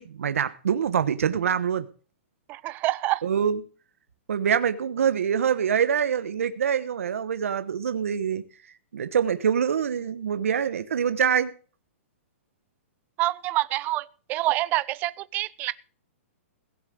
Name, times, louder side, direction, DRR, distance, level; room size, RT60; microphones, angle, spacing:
voice 1, 0.0-1.9 3.2-3.6 4.3-8.4 8.9-11.5, right 8 dB, 85° right, 1.2 m, -25 dB
voice 2, 2.5-3.2 13.2-15.7, right 17 dB, 25° right, 0.6 m, -27 dB
17.0 x 7.4 x 6.5 m
hypercardioid pair, 155°, 7 cm